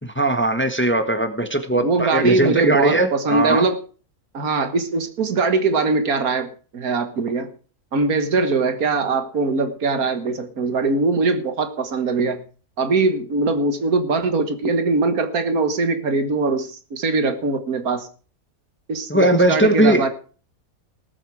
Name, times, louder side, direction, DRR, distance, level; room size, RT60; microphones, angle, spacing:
voice 1, 0.0-3.7 19.1-20.0, right 1 dB, 10° left, 8 dB, 1.1 m, -19 dB
voice 2, 1.7-3.8 4.3-7.5 7.9-12.4 12.8-18.1 18.9-20.1, right 3 dB, 80° right, 9 dB, 2.0 m, -21 dB
19.0 x 7.8 x 4.8 m, 0.39 s
omnidirectional pair, 1.5 m